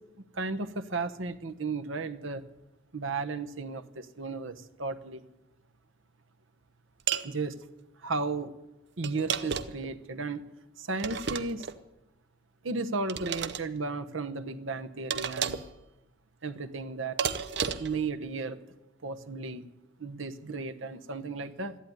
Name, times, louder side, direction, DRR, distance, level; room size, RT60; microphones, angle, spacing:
voice 1, 0.3-2.4 2.9-5.2 7.2-7.6 8.0-8.5 9.0-10.4 10.8-11.7 12.6-15.6 16.4-17.2 17.8-18.6 19.0-19.7 20.0-21.8, right 3 dB, 85° right, 9 dB, 1.0 m, -34 dB
sound 1, 7.1-7.3 9.0-9.9 11.0-11.8 13.1-13.6 15.1-15.7 17.2-18.0, right 7 dB, 60° right, 0.8 m, -32 dB
13.0 x 11.5 x 9.5 m, 0.97 s
head